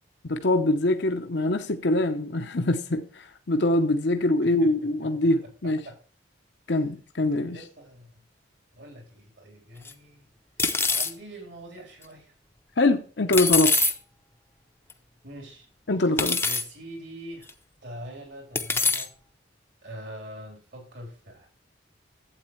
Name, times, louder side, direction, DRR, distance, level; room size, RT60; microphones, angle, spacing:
voice 1, 0.2-5.8 6.7-7.6 12.8-13.8 15.9-16.4, left 2 dB, 65° left, 0.8 m, -24 dB
voice 2, 4.4-5.3 5.8-6.0 7.5-8.2 8.7-10.3 10.8-12.3 15.2-15.7 16.4-17.5 17.8-19.1 19.8-21.5, equal, 65° right, 3.8 m, -43 dB
sound 1, 9.9-10.0 10.6-11.1 13.3-13.9 14.9-15.0 16.2-16.6 17.5-17.6 18.6-19.1, left 4 dB, 10° left, 0.7 m, -24 dB
12.0 x 8.4 x 3.1 m
head